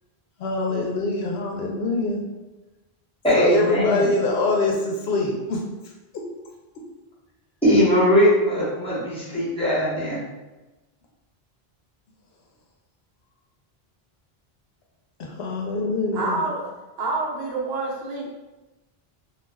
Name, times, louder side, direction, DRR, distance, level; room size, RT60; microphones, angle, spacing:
voice 1, 0.4-2.2 3.3-5.6 15.2-16.4, left 3 dB, 85° left, 0 dB, 0.9 m, -24 dB
voice 2, 3.2-4.1 7.6-10.2, equal, 5° left, -10 dB, 1.0 m, -20 dB
voice 3, 16.1-16.7 17.0-18.3, right 3 dB, 80° right, -2 dB, 0.9 m, -27 dB
2.3 x 2.3 x 3.3 m, 1.1 s
omnidirectional pair, 1.0 m